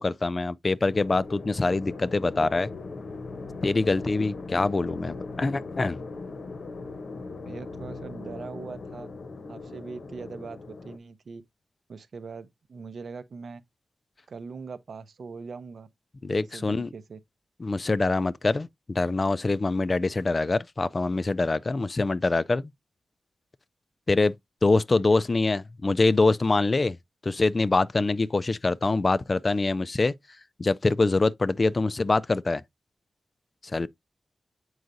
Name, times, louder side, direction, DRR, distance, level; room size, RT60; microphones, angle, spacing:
voice 1, 0.0-2.7 3.6-6.0 16.2-16.9 17.6-22.7 24.1-24.3 24.6-27.0 27.2-30.1 30.6-32.6 33.7-33.9, left 3 dB, 35° left, 0.3 m, -24 dB
sound 1, 0.9-11.0, left 3 dB, 70° left, 0.8 m, -39 dB
voice 2, 7.5-9.1 9.5-10.6 10.8-11.4 11.9-13.6 14.3-15.9 16.5-17.2, right 4 dB, 70° right, 0.7 m, -41 dB
7.8 x 4.7 x 2.6 m
wide cardioid pair, 95°, 0 cm